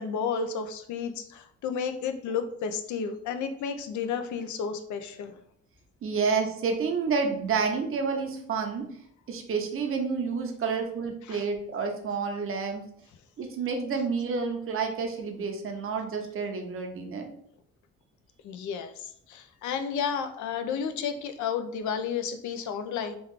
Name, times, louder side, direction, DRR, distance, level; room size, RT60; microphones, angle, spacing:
voice 1, 0.0-5.3 11.3-11.4 18.4-23.2, left 6 dB, 75° left, 8 dB, 0.5 m, -32 dB
voice 2, 6.0-8.9 9.3-12.8 13.4-17.3, right 5 dB, 45° right, 4 dB, 0.7 m, -29 dB
3.0 x 2.3 x 3.6 m, 0.66 s
cardioid pair, 90°, 30 cm